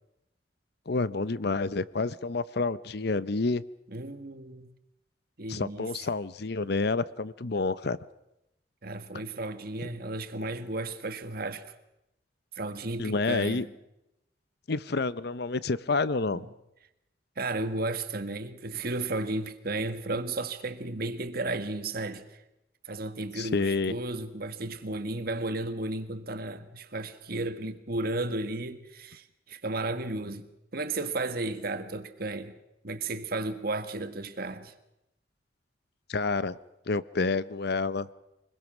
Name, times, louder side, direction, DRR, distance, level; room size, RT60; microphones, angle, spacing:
voice 1, 0.9-3.6 5.5-8.0 13.0-13.7 14.7-16.5 23.4-23.9 36.1-36.6 36.9-38.1, left 3 dB, 60° left, 0.7 m, -29 dB
voice 2, 3.9-4.7 5.4-5.9 8.8-11.7 12.5-13.7 16.3-16.5 17.4-22.4 22.8-30.5 30.7-32.6 32.8-34.7, right 2 dB, 55° right, 1.5 m, -34 dB
24.5 x 21.0 x 6.2 m
head